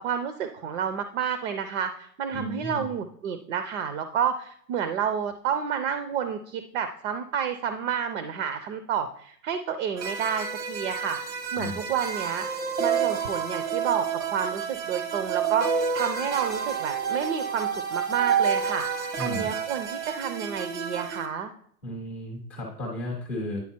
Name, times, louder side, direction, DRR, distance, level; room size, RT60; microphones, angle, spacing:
voice 1, 0.0-12.5 12.8-21.5, right 7 dB, 45° right, 9 dB, 0.6 m, -30 dB
voice 2, 2.3-2.8 11.5-11.8 19.2-19.5 21.8-23.6, left 1 dB, 10° left, -6 dB, 0.4 m, -34 dB
sound 1, 10.0-21.3, right 7 dB, 80° right, 1.6 m, -29 dB
9.6 x 3.9 x 4.4 m, 0.63 s
hypercardioid pair, 140°, 49 cm